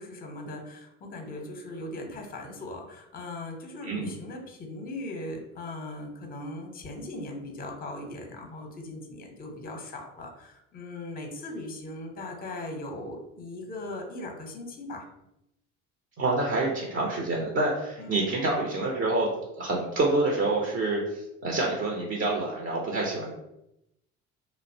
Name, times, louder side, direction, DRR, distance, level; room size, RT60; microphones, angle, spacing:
voice 1, 0.0-15.1 18.0-18.2, left 2 dB, 20° left, 2 dB, 0.7 m, -39 dB
voice 2, 16.2-19.3 19.6-23.3, right 2 dB, 35° right, -2 dB, 0.6 m, -27 dB
2.6 x 2.1 x 2.6 m, 0.84 s
hypercardioid pair, 60°, 39 cm